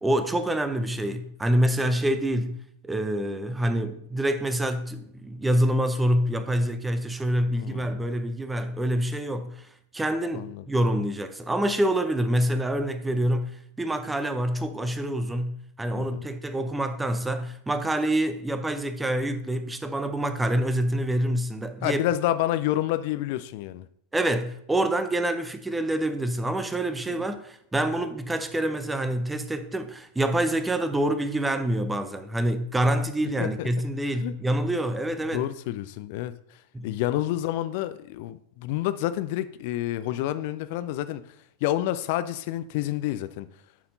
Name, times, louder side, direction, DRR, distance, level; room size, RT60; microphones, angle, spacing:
voice 1, 0.0-9.7 9.9-22.0 24.1-35.5 36.7-36.9, right 1 dB, 10° right, 0.6 m, -26 dB
voice 2, 7.6-8.0 10.3-10.6 16.0-16.3 21.8-23.9 27.1-27.3 33.4-33.7 34.2-34.3 35.3-36.3 36.8-41.2 41.6-43.5, left 14 dB, 50° left, 0.5 m, -29 dB
10.5 x 4.3 x 4.0 m
figure-of-eight pair, 90°, 0 cm